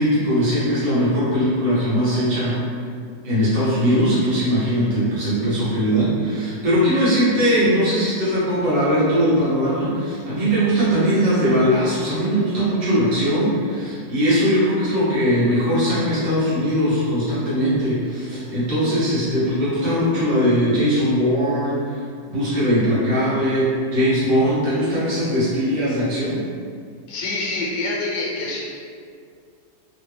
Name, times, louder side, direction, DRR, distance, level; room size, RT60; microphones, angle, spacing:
voice 1, 0.0-2.6 3.2-22.0 22.3-26.4, equal, 80° right, -10 dB, 2.0 m, -20 dB
voice 2, 27.1-28.6, left 2 dB, 70° left, -4 dB, 1.2 m, -26 dB
4.0 x 2.3 x 3.2 m, 2.2 s
omnidirectional pair, 1.9 m